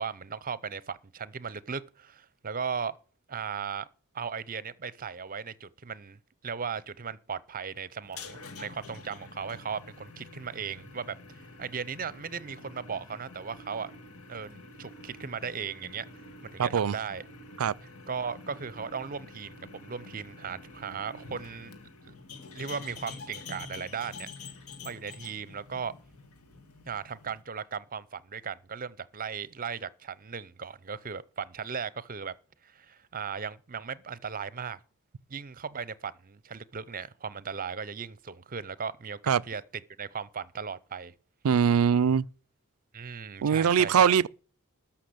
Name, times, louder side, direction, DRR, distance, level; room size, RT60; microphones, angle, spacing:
voice 1, 0.0-3.0 3.3-3.9 4.1-13.9 14.3-16.1 16.4-17.2 18.1-21.7 22.1-22.2 22.5-24.3 24.8-25.9 26.9-32.3 32.6-34.8 35.3-41.1 42.9-44.2, right 6 dB, 40° right, 0.7 m, -37 dB
sound 1, 8.0-27.4, left 3 dB, 80° left, 2.0 m, -47 dB
voice 2, 16.6-16.9 17.6-17.7 39.3-39.4 41.4-42.3 43.4-44.3, right 7 dB, 75° right, 0.4 m, -22 dB
13.0 x 5.9 x 7.9 m
head